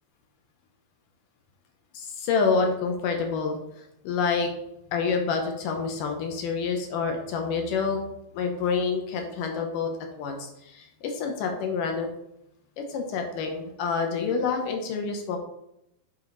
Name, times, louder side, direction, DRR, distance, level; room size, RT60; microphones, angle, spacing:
voice 1, 1.9-3.6 4.0-4.5 4.9-8.0 8.3-9.9 10.2-12.1 12.8-15.4, left 5 dB, 70° left, 3 dB, 2.2 m, -27 dB
8.4 x 5.0 x 4.0 m, 0.83 s
omnidirectional pair, 4.5 m